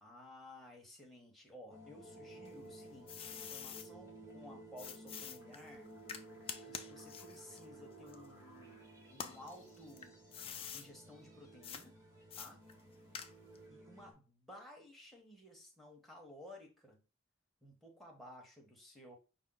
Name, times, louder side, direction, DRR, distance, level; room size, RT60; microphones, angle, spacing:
voice 1, 0.0-6.0 6.7-10.2 10.7-12.0 12.4-12.6 13.7-17.0 17.6-19.2, left 1 dB, ahead, 0.9 m, -56 dB
sound 1, 1.7-14.1, right 2 dB, 15° right, 1.2 m, -55 dB
sound 2, 2.4-3.9 4.8-8.7 9.1-10.9 11.6-11.8 12.3-13.6, left 7 dB, 25° left, 0.4 m, -47 dB
5.1 x 2.1 x 3.7 m
head